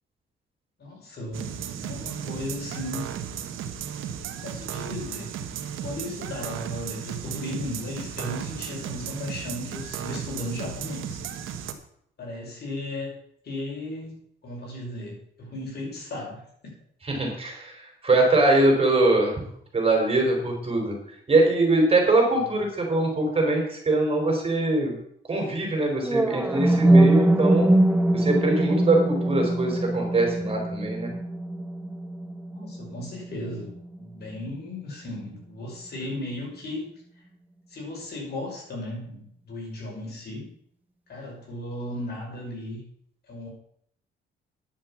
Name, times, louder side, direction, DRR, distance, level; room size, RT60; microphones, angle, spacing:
voice 1, 0.8-3.1 4.4-5.3 5.8-11.2 12.2-13.1 13.4-14.1 14.4-16.7 27.6-27.7 32.5-33.7 34.0-36.9 37.7-40.5 41.1-42.8 43.3-43.5, left 1 dB, 55° left, -1 dB, 5.9 m, -35 dB
sound 1, 1.3-11.7, right 8 dB, 85° right, 1.2 m, -35 dB
voice 2, 17.1-19.3 19.7-20.9 21.3-25.0 25.3-27.7 28.1-31.1, right 2 dB, 30° right, 2 dB, 4.4 m, -22 dB
sound 2, 26.0-34.0, right 1 dB, 10° right, 0.8 m, -22 dB
10.0 x 7.6 x 7.3 m, 0.69 s
cardioid pair, 90°, 20 cm